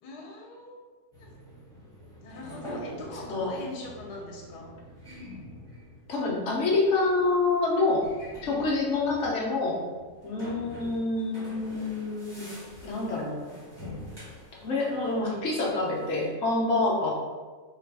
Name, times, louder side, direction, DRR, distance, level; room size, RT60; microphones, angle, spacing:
voice 1, 0.0-0.8 1.2-1.3 2.2-4.8 9.1-9.4 10.8-10.9, left 2 dB, 80° left, 0 dB, 1.4 m, -42 dB
sound 1, 1.1-16.3, equal, 20° right, 1.1 m, -46 dB
voice 2, 6.1-8.0 8.4-9.9 10.2-12.5 12.8-13.4 14.6-17.1, left 3 dB, 55° left, -3 dB, 1.1 m, -27 dB
3.8 x 2.4 x 4.6 m, 1.4 s
omnidirectional pair, 1.7 m